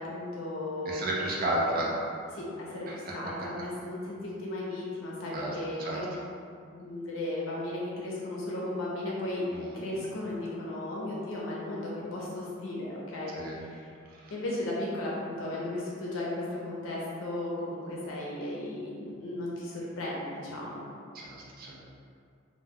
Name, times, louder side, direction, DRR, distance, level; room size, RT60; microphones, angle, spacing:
voice 1, 0.0-1.0 1.4-1.7 2.3-6.1 6.7-13.9 14.3-20.8, left 1 dB, 85° left, -5 dB, 0.5 m, -35 dB
voice 2, 0.8-1.9 2.9-3.1 5.3-6.0 9.5-9.8 13.3-13.6 14.2-14.3 21.1-21.8, right 1 dB, 50° right, -4 dB, 0.5 m, -33 dB
2.2 x 2.2 x 3.4 m, 2.3 s
head